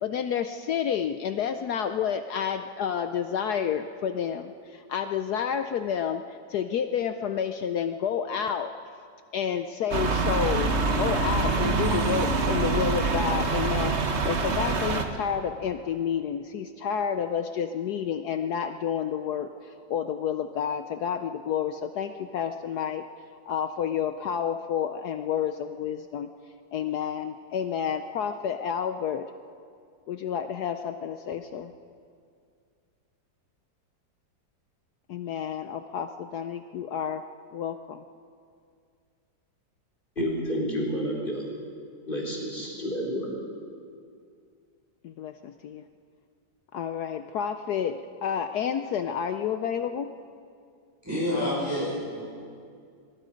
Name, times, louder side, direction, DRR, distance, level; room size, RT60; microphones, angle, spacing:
voice 1, 0.0-8.7 9.3-23.1 23.5-26.3 26.7-29.3 30.1-31.7 35.1-37.2 37.5-38.0 45.0-45.8 46.7-50.1, left 8 dB, 65° left, 8 dB, 1.1 m, -30 dB
sound 1, 9.9-15.0, right 4 dB, 40° right, 1.5 m, -25 dB
voice 2, 40.2-41.5 42.1-43.3, equal, 25° left, -2 dB, 4.6 m, -30 dB
voice 3, 51.0-52.2, left 1 dB, 10° right, -8 dB, 6.3 m, -28 dB
23.5 x 22.0 x 5.2 m, 2.3 s
omnidirectional pair, 2.0 m